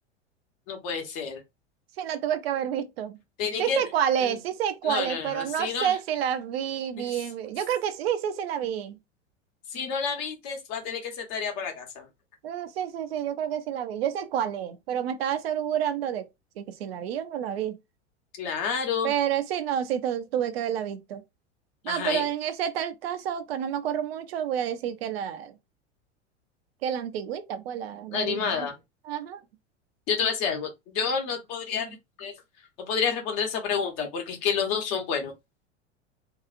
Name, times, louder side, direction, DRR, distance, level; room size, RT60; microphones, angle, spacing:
voice 1, 0.7-1.4 3.4-3.8 4.2-4.4 4.8-6.0 7.0-7.2 9.7-12.1 18.4-19.1 21.9-22.3 28.1-28.7 30.1-32.3 32.9-35.3, left 6 dB, 45° left, 1.1 m, -29 dB
voice 2, 2.0-3.2 3.6-9.0 12.4-16.3 16.6-17.8 19.0-21.2 21.8-25.5 26.8-28.7 29.0-29.4, right 9 dB, 60° right, 0.6 m, -29 dB
2.8 x 2.3 x 2.4 m
figure-of-eight pair, 85°, 35 cm